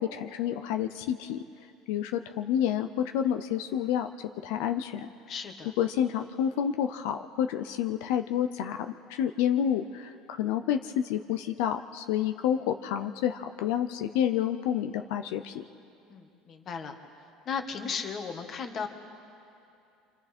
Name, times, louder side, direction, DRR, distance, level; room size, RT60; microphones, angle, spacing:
voice 1, 0.0-1.4 1.9-5.1 5.8-15.6, left 9 dB, 80° left, 7 dB, 0.7 m, -29 dB
voice 2, 5.3-5.7 16.1-16.9 17.4-18.9, left 6 dB, 30° left, 6 dB, 1.5 m, -35 dB
29.0 x 26.5 x 4.4 m, 2.6 s
cardioid pair, 160°, 0 cm